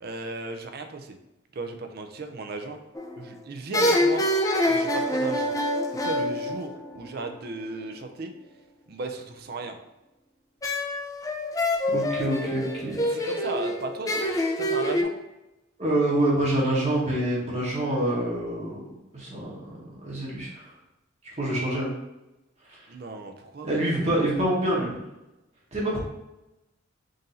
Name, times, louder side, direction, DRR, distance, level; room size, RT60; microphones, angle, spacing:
voice 1, 0.0-1.2 1.5-2.8 3.2-4.3 4.7-5.5 5.9-8.3 8.9-9.8 13.0-14.3 14.6-15.1 22.9-23.7, right 3 dB, 50° right, 6 dB, 0.5 m, -35 dB
sound 1, 2.9-3.3 3.7-7.4 10.6-15.0, left 1 dB, 15° left, 0.4 m, -26 dB
voice 2, 11.9-13.0 15.8-18.8 19.1-19.6 19.8-20.6 21.4-21.9 23.6-25.0 25.7-26.0, right 1 dB, 35° right, -5 dB, 0.9 m, -26 dB
3.8 x 2.6 x 4.1 m, 0.95 s
head